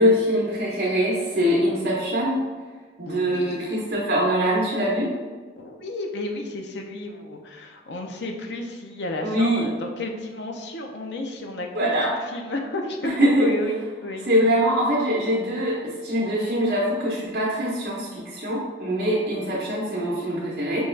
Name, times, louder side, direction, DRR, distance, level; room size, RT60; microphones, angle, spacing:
voice 1, 0.0-2.4 3.0-5.1 9.2-9.7 11.7-12.1 13.0-13.5 14.3-20.9, equal, 55° right, -5 dB, 0.7 m, -23 dB
voice 2, 3.1-3.8 5.6-11.9 12.3-13.1 13.4-14.3, left 1 dB, 80° left, 3 dB, 0.5 m, -32 dB
5.3 x 2.3 x 3.2 m, 1.4 s
head